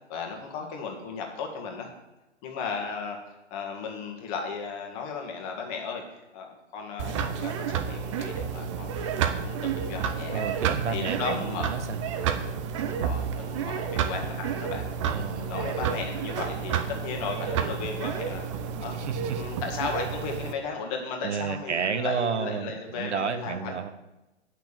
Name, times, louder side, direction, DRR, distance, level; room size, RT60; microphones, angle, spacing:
voice 1, 0.1-1.9 2.4-10.5 10.9-11.8 12.9-15.1 15.3-19.0 19.3-23.7, left 5 dB, 30° left, 2 dB, 1.9 m, -35 dB
sound 1, 7.0-20.5, right 7 dB, 25° right, 0.6 m, -30 dB
voice 2, 10.3-12.0 15.1-15.8 18.8-19.5 21.2-23.9, right 6 dB, 70° right, 10 dB, 1.0 m, -31 dB
8.1 x 6.2 x 7.4 m, 1.0 s
hypercardioid pair, 135°, 36 cm